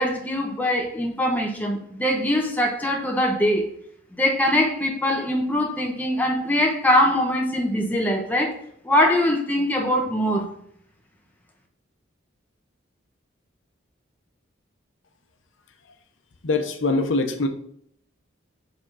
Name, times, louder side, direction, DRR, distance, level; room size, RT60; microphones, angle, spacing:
voice 1, 0.0-3.6 4.2-8.6 8.8-10.5, left 1 dB, 10° left, 0 dB, 1.0 m, -22 dB
voice 2, 16.4-17.5, left 3 dB, 80° left, 6 dB, 0.8 m, -23 dB
6.9 x 3.7 x 4.0 m, 0.70 s
head